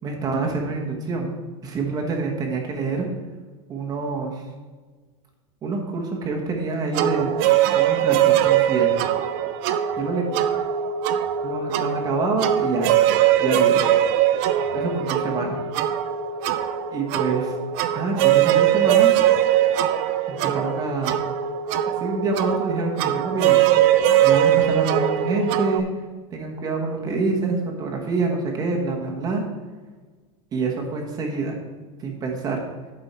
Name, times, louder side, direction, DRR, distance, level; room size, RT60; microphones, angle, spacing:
voice 1, 0.0-1.4 1.6-3.1 3.7-4.4 5.6-7.3 7.7-9.0 10.0-10.2 11.4-12.9 13.4-13.8 14.7-15.6 16.9-17.5 17.9-19.2 20.3-21.2 22.0-23.6 24.2-25.9 26.3-29.4 30.5-31.6 32.0-32.6, right 4 dB, 20° right, 1 dB, 1.3 m, -26 dB
sound 1, 6.9-25.8, right 11 dB, 45° right, 0.5 m, -21 dB
11.5 x 5.5 x 4.3 m, 1.4 s
supercardioid pair, 165°, 18 cm